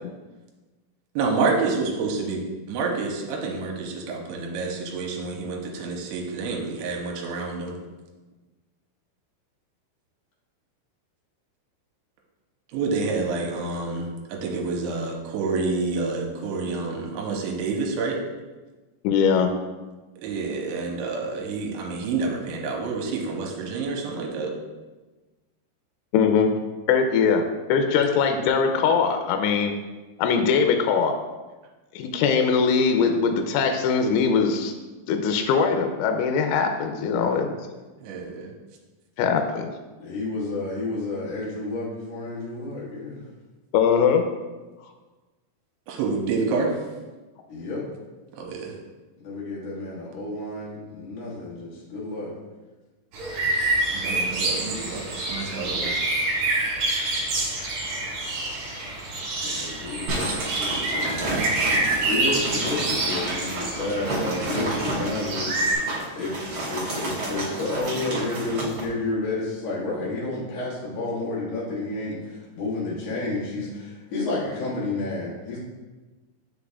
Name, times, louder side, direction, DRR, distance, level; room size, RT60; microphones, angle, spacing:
voice 1, 1.2-2.4 2.7-7.8 12.7-18.2 20.2-24.5 38.0-38.5 45.9-46.8 48.3-48.7 53.9-56.0, right 4 dB, 80° right, 1 dB, 3.0 m, -28 dB
voice 2, 19.0-19.5 26.1-26.5 26.9-29.7 30.2-31.2 32.0-34.7 35.1-37.5 39.2-39.7 43.7-44.3, left 6 dB, 85° left, 5 dB, 3.0 m, -21 dB
voice 3, 36.9-37.5 40.0-43.2 47.5-47.8 49.2-52.3 59.4-61.4 61.7-75.6, left 2 dB, 60° left, -7 dB, 1.7 m, -31 dB
sound 1, 53.1-65.7, right 2 dB, 60° right, 3.0 m, -27 dB
sound 2, 60.1-68.9, right 2 dB, 45° right, 2.2 m, -30 dB
7.2 x 6.7 x 2.3 m, 1.2 s
omnidirectional pair, 5.5 m